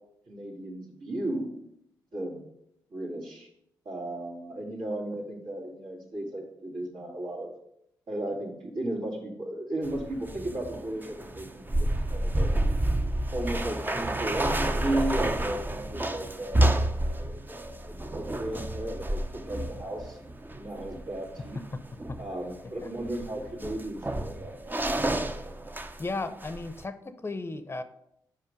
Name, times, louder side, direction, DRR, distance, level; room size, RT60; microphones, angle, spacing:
voice 1, 0.3-1.5 2.1-2.4 2.9-3.5 3.8-7.5 8.1-12.5 13.3-20.2 20.5-21.6 22.2-24.8, right 1 dB, 70° right, -5 dB, 2.5 m, -35 dB
sound 1, 9.8-26.1 26.4-26.8, right 1 dB, 20° right, 0.6 m, -30 dB
voice 2, 26.0-27.8, left 3 dB, 30° left, 11 dB, 0.7 m, -35 dB
5.6 x 5.1 x 5.1 m, 0.76 s
hypercardioid pair, 40°, 9 cm